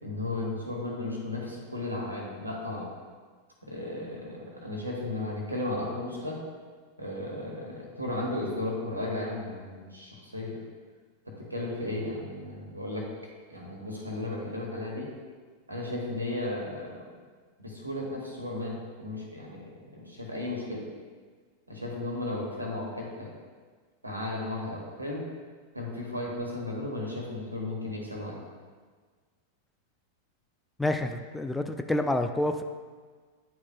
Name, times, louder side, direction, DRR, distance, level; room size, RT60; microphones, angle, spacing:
voice 1, 0.0-2.9 3.6-6.4 7.0-10.6 11.3-13.0 13.5-15.1 15.7-17.0 17.6-19.6 19.9-20.8 21.7-23.3 24.0-25.2 25.7-28.4, left 2 dB, 85° right, -2 dB, 1.4 m, -34 dB
voice 2, 30.8-32.6, left 1 dB, 5° left, 6 dB, 0.3 m, -28 dB
10.0 x 4.7 x 2.2 m, 1.5 s
figure-of-eight pair, 90°, 0 cm